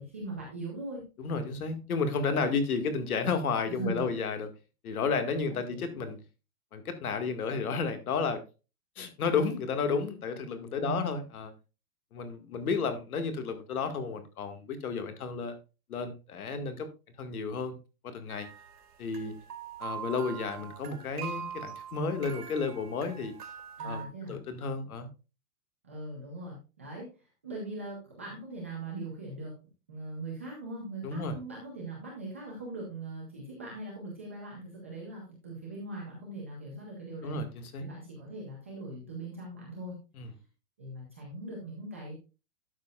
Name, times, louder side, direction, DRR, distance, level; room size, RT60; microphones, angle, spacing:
voice 1, 0.0-1.0 3.7-4.1 5.4-5.8 10.8-11.2 23.8-24.4 25.8-27.1 27.4-29.5 29.9-37.4 37.8-40.0 40.8-42.1, right 2 dB, 10° right, -4 dB, 0.5 m, -40 dB
voice 2, 1.2-4.5 4.8-6.2 6.7-8.4 9.0-11.5 12.1-15.6 15.9-16.9 17.2-17.8 18.0-18.5 19.0-19.3 19.8-23.3 23.8-25.1 31.0-31.4 37.2-37.9 40.2-40.3, left 5 dB, 65° left, 8 dB, 2.0 m, -32 dB
sound 1, 18.3-24.1, right 8 dB, 90° right, 2.4 m, -43 dB
12.0 x 6.7 x 2.4 m, 0.30 s
hypercardioid pair, 170°, 46 cm